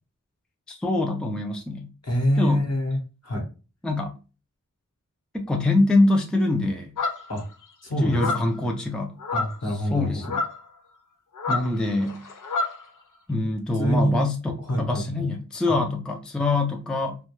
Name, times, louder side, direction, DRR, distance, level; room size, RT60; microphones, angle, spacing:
voice 1, 0.7-1.9 2.4-2.6 3.8-4.1 5.3-6.9 7.9-9.1 9.7-10.4 11.5-12.2 13.3-17.2, left 2 dB, ahead, 2 dB, 0.4 m, -24 dB
voice 2, 2.0-3.0 3.2-3.5 7.3-7.4 7.8-8.2 9.3-10.1 13.8-14.2 14.7-15.0, equal, 50° left, 1 dB, 1.0 m, -25 dB
sound 1, 7.0-7.4 8.1-8.6 9.2-9.6 10.2-10.6 11.4-12.8, left 3 dB, 70° left, 0.5 m, -28 dB
2.3 x 2.2 x 3.0 m, 0.33 s
wide cardioid pair, 40°, 32 cm